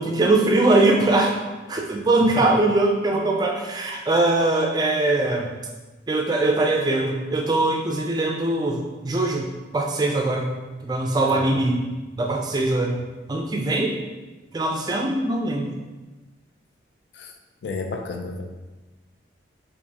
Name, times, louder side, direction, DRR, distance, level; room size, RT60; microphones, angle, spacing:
voice 1, 0.0-1.4 1.7-5.5 6.1-9.5 9.7-10.5 10.8-11.8 12.2-13.0 13.3-13.9 14.5-15.7, right 2 dB, 20° right, 1 dB, 0.3 m, -21 dB
voice 2, 17.6-18.4, left 3 dB, 70° left, 4 dB, 0.4 m, -31 dB
4.5 x 2.5 x 2.8 m, 1.2 s
head